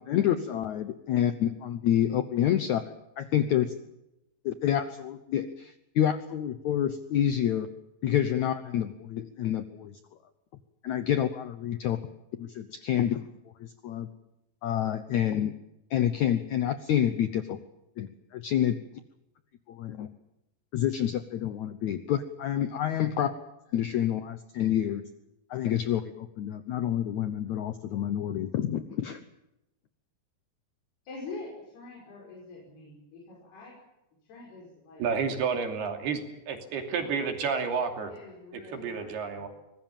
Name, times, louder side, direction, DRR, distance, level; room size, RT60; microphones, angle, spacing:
voice 1, 0.1-2.8 3.2-3.7 4.4-7.7 8.0-10.0 10.8-12.0 12.4-13.2 13.6-14.1 14.6-15.5 15.9-17.6 18.0-18.8 19.7-20.1 20.7-23.3 23.7-25.0 25.5-29.2, left 10 dB, 90° left, 11 dB, 1.6 m, -28 dB
voice 2, 31.1-33.8 34.2-35.1 36.9-37.4 38.1-39.5, left 3 dB, 70° left, -3 dB, 7.6 m, -45 dB
voice 3, 35.0-36.2 36.5-38.1 38.7-39.5, right 5 dB, 70° right, 5 dB, 4.7 m, -30 dB
24.5 x 20.5 x 7.4 m, 0.90 s
omnidirectional pair, 4.8 m